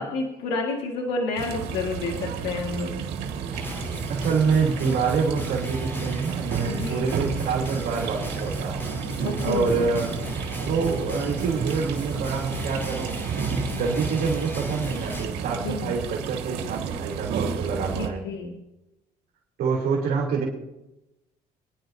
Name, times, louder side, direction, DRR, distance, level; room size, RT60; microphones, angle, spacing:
voice 1, 0.0-3.0 6.7-7.1 9.2-9.9 15.6-15.9 17.9-18.5, left 3 dB, 85° left, -1 dB, 1.8 m, -30 dB
sound 1, 1.4-18.1, right 7 dB, 80° right, 1.6 m, -32 dB
sound 2, 3.5-15.2, equal, 15° left, 5.3 m, -35 dB
voice 2, 4.1-8.9 9.4-10.2 10.7-18.2 19.6-20.5, right 5 dB, 65° right, -4 dB, 2.8 m, -27 dB
24.5 x 10.5 x 2.6 m, 0.94 s
cardioid pair, 110°, 17 cm